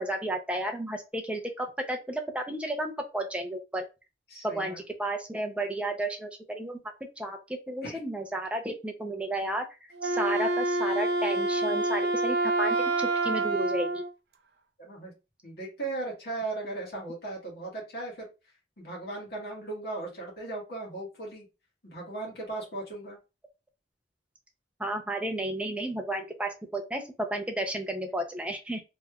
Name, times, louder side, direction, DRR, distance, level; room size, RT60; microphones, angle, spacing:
voice 1, 0.0-3.9 4.4-6.8 7.2-9.6 10.0-14.0 24.8-28.8, right 1 dB, 5° right, 3 dB, 0.5 m, -32 dB
voice 2, 4.3-4.8 7.8-8.0 14.8-15.1 15.4-18.3 18.8-21.5 21.8-23.2, right 2 dB, 60° left, -3 dB, 1.6 m, -37 dB
Wind instrument woodwind instrument, 9.9-14.1, right 2 dB, 65° right, 0.5 m, -27 dB
3.3 x 3.1 x 2.3 m, 0.28 s
head